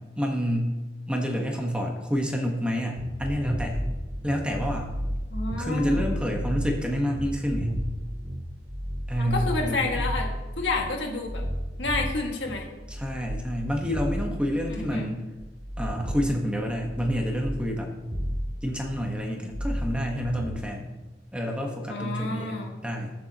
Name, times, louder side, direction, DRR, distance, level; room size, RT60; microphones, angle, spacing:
voice 1, 0.2-0.7 1.1-3.8 4.2-4.9 5.6-7.7 9.1-10.0 12.9-15.3 15.8-17.9 18.6-20.9 21.3-23.1, equal, 5° right, 1 dB, 1.3 m, -28 dB
sound 1, 3.0-19.2 19.5-20.6, equal, 40° right, 2.8 m, -33 dB
voice 2, 5.3-6.0 9.2-10.3 10.6-11.4 11.8-12.7 14.7-15.1 21.9-22.7, left 3 dB, 75° left, 0 dB, 2.0 m, -30 dB
21.0 x 7.1 x 3.0 m, 1.1 s
head